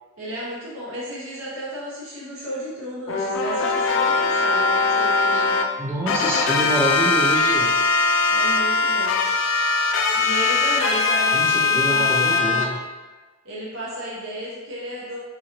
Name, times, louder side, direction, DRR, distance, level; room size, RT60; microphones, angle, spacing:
voice 1, 0.2-5.6 8.3-9.2 10.1-12.8 13.4-15.2, equal, 75° right, -7 dB, 0.8 m, -33 dB
sound 1, 3.1-5.6 6.1-12.6, left 4 dB, 65° left, 0.4 m, -20 dB
voice 2, 5.8-7.8 11.3-12.8, right 1 dB, 10° right, -4 dB, 0.4 m, -26 dB
3.7 x 2.9 x 2.8 m, 1.3 s
head